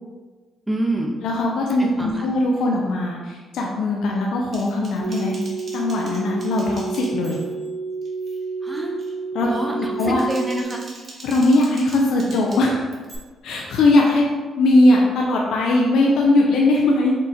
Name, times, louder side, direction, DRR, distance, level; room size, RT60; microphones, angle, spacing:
voice 1, 0.7-1.1 1.8-2.3 8.6-9.0 9.5-10.9, right 1 dB, 10° right, 0 dB, 0.7 m, -27 dB
voice 2, 1.2-5.3 5.7-7.4 9.3-10.2 11.2-12.9 13.4-14.2 14.6-17.1, left 2 dB, 80° left, -2 dB, 0.5 m, -19 dB
Typing, 4.5-7.7 8.0-8.4 8.8-9.1 9.9-13.2, right 2 dB, 45° right, 1.0 m, -43 dB
sound 1, 5.0-10.6, right 4 dB, 85° right, 0.4 m, -30 dB
4.5 x 2.4 x 4.1 m, 1.4 s
cardioid pair, 90°, 0 cm